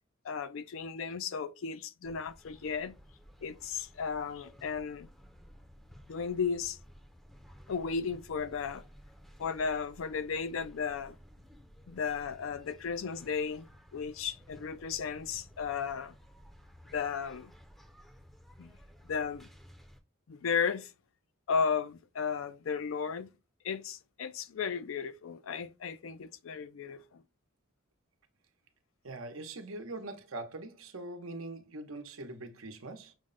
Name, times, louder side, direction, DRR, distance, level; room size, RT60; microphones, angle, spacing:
voice 1, 0.2-2.9 3.4-5.1 6.1-6.8 7.7-8.8 9.4-11.2 11.9-16.1 16.9-17.5 18.6-18.7 19.1-19.5 20.3-20.9 21.5-23.3 23.6-27.2, left 6 dB, 80° left, 0.4 m, -34 dB
sound 1, 2.0-20.0, equal, ahead, 0.5 m, -56 dB
voice 2, 29.0-33.1, right 2 dB, 90° right, 0.8 m, -42 dB
6.2 x 2.1 x 3.8 m
head